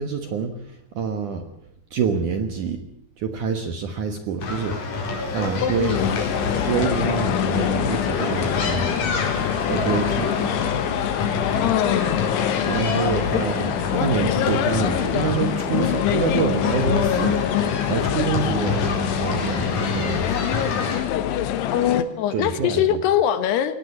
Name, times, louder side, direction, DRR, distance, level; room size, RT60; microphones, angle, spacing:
voice 1, 0.0-1.5 1.9-2.8 3.2-4.8 5.3-6.0 6.3-9.0 9.7-10.4 12.7-18.9 19.2-20.4 22.3-23.0, right 6 dB, 65° right, 7 dB, 2.1 m, -27 dB
sound 1, 4.4-21.0, left 3 dB, 45° left, 5.6 m, -28 dB
voice 2, 5.6-6.2 11.6-12.2 13.3-13.4 21.7-23.8, left 10 dB, 70° left, 11 dB, 3.0 m, -22 dB
sound 2, 5.9-22.0, left 11 dB, 90° left, 3.7 m, -25 dB
22.0 x 18.0 x 8.4 m, 0.68 s
omnidirectional pair, 5.3 m